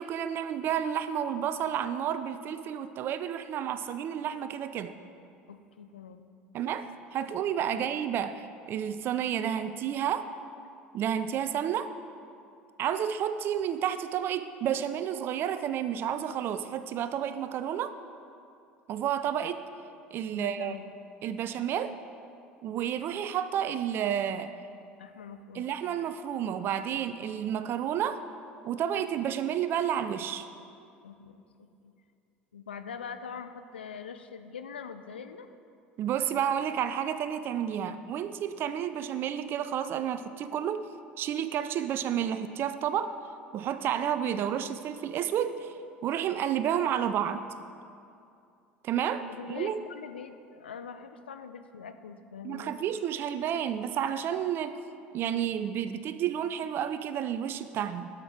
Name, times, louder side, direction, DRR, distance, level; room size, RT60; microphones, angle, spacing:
voice 1, 0.0-4.9 6.5-10.3 10.9-11.9 12.8-17.9 18.9-19.6 20.1-20.7 21.2-22.0 22.6-24.5 25.5-28.2 28.6-30.5 36.0-40.9 41.2-43.1 43.5-45.7 46.0-47.5 48.8-49.8 52.4-54.8 55.1-58.1, right 9 dB, 40° right, 12 dB, 0.4 m, -31 dB
voice 2, 5.5-6.3 7.7-8.0 20.3-20.9 25.0-25.7 31.0-31.9 32.5-35.5 37.7-38.1 49.3-52.8, left 6 dB, 75° left, 9 dB, 0.4 m, -43 dB
12.5 x 5.9 x 4.9 m, 2.5 s
figure-of-eight pair, 70°, 6 cm